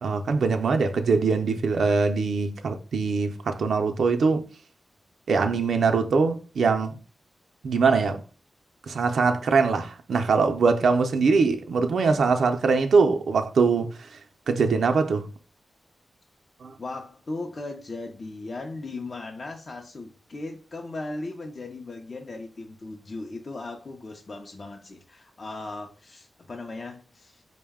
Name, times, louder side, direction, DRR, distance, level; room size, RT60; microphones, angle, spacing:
voice 1, 0.0-4.4 5.3-7.0 7.6-8.2 8.9-14.1 14.5-15.3 16.6-16.7, right 4 dB, 85° right, 0.4 m, -22 dB
voice 2, 16.8-27.4, left 2 dB, 45° left, 0.5 m, -37 dB
4.6 x 2.1 x 3.5 m
wide cardioid pair, 85°, 0 cm